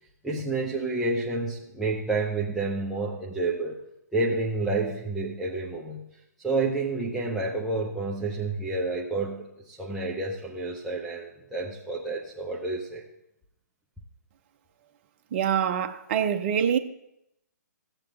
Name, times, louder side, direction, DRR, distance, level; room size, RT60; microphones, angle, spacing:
voice 1, 0.2-3.8 4.1-6.1 6.4-13.0, right 3 dB, ahead, 0.8 m, -29 dB
voice 2, 15.3-16.8, right 8 dB, 35° right, 0.8 m, -25 dB
15.5 x 7.6 x 3.8 m
hypercardioid pair, 145°, 10 cm